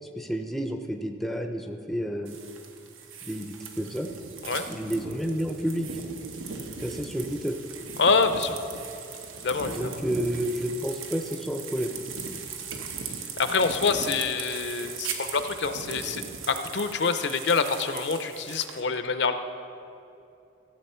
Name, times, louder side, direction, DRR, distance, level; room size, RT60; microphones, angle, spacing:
voice 1, 0.2-2.4 3.2-4.1 4.7-5.9 6.8-7.6 9.7-12.0, equal, ahead, 4 dB, 0.5 m, -30 dB
sound 1, 2.3-18.8, right 5 dB, 90° right, 1.0 m, -39 dB
voice 2, 8.0-8.6 9.4-10.0 13.4-19.3, left 4 dB, 60° left, 9 dB, 0.6 m, -26 dB
15.0 x 7.7 x 4.4 m, 2.7 s
head